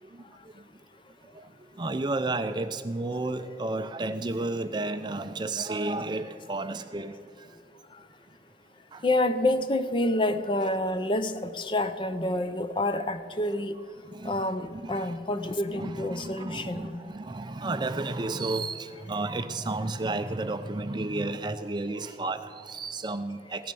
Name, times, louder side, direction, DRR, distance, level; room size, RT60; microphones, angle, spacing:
voice 1, 1.3-7.5 8.9-9.0 14.0-14.5 14.7-15.2 15.4-23.7, right 2 dB, 25° right, 10 dB, 0.4 m, -32 dB
voice 2, 9.0-13.8 14.2-17.0, left 1 dB, 30° left, 11 dB, 0.6 m, -28 dB
16.5 x 11.0 x 6.9 m, 2.4 s
head